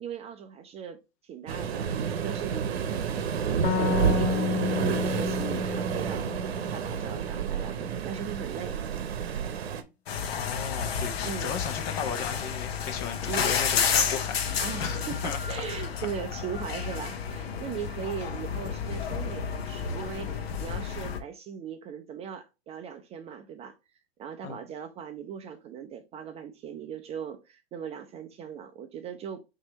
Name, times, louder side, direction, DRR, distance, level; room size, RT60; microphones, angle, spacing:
voice 1, 0.0-8.8 11.2-11.5 13.3-13.5 14.6-23.7 24.2-29.4, right 8 dB, 20° right, 0.4 m, -39 dB
Waves surf, 1.5-9.8, right 7 dB, 75° right, 0.8 m, -29 dB
sound 1, 3.6-7.1, left 10 dB, 85° left, 1.2 m, -31 dB
sound 2, 10.1-21.2, left 7 dB, 70° left, 0.9 m, -31 dB
voice 2, 10.3-15.0 15.2-15.4 24.4-24.6, left 7 dB, 40° left, 1.0 m, -35 dB
5.9 x 2.8 x 2.9 m
hypercardioid pair, 105°, 31 cm